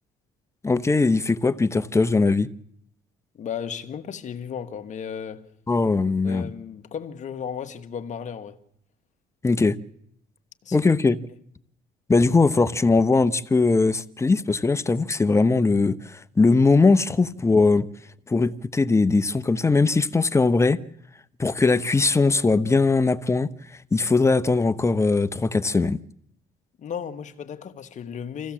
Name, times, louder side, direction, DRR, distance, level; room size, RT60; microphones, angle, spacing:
voice 1, 0.6-2.5 5.7-6.5 9.4-9.8 10.7-11.2 12.1-17.9 18.3-20.8 21.4-23.5 23.9-26.0, left 3 dB, 15° left, 0.8 m, -20 dB
voice 2, 3.4-5.5 6.2-8.6 10.6-10.8 26.8-28.5, left 7 dB, 45° left, 1.6 m, -34 dB
26.5 x 15.5 x 7.4 m
cardioid pair, 110°, 17 cm